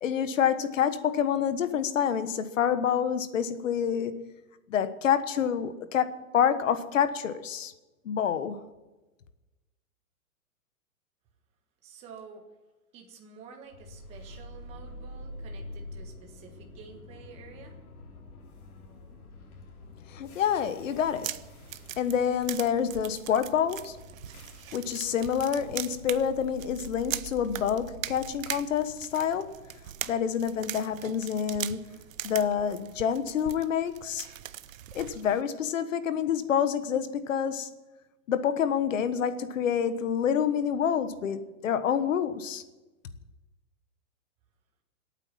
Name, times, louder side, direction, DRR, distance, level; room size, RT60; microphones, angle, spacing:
voice 1, 0.0-4.3 4.7-7.7 8.0-8.6 20.1-21.4 22.0-24.0 24.7-29.5 30.1-31.8 32.2-34.3 34.9-37.7 38.3-42.6, left 8 dB, 60° left, 12 dB, 1.4 m, -27 dB
voice 2, 11.8-12.4 12.9-17.8, right 6 dB, 15° right, 2 dB, 1.4 m, -49 dB
sound 1, 13.7-31.8, left 2 dB, 90° left, 3.6 m, -47 dB
sound 2, 20.9-35.4, right 11 dB, 65° right, 0.8 m, -41 dB
25.0 x 9.0 x 5.9 m, 1.1 s
hypercardioid pair, 170°, 43 cm